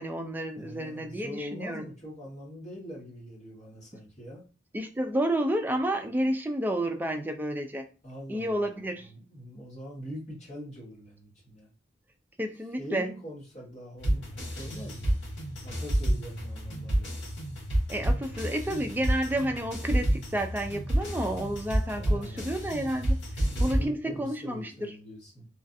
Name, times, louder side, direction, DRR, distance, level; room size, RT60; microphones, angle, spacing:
voice 1, 0.0-1.8 4.7-7.8 8.3-9.1 12.4-13.1 17.9-23.2 23.6-24.7, right 1 dB, 10° right, 4 dB, 0.3 m, -30 dB
voice 2, 0.5-4.4 8.0-11.7 12.8-15.2 15.6-17.1 21.9-22.6 23.5-25.5, equal, 35° left, -5 dB, 1.4 m, -43 dB
sound 1, 14.0-23.9, right 1 dB, 75° left, 1.7 m, -29 dB
3.1 x 2.5 x 2.5 m, 0.34 s
head